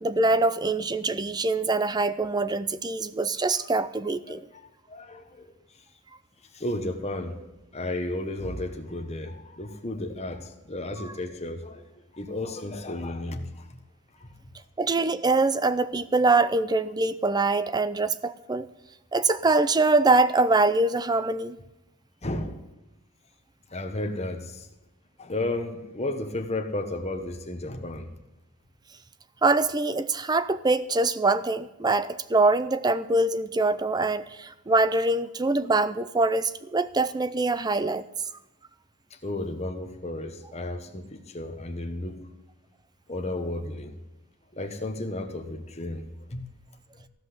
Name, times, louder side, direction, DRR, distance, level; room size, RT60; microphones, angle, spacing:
voice 1, 0.0-4.4 14.8-18.7 19.1-21.6 29.4-38.0, right 3 dB, 20° right, 14 dB, 0.5 m, -24 dB
voice 2, 4.9-5.5 6.5-7.5 7.7-11.8 12.1-13.8 14.2-14.3 22.2-22.6 23.7-24.7 25.2-28.1 39.1-42.2 43.1-43.9 44.5-46.4 46.9-47.0, left 2 dB, 30° left, 5 dB, 1.4 m, -33 dB
15.5 x 5.8 x 9.7 m, 0.99 s
head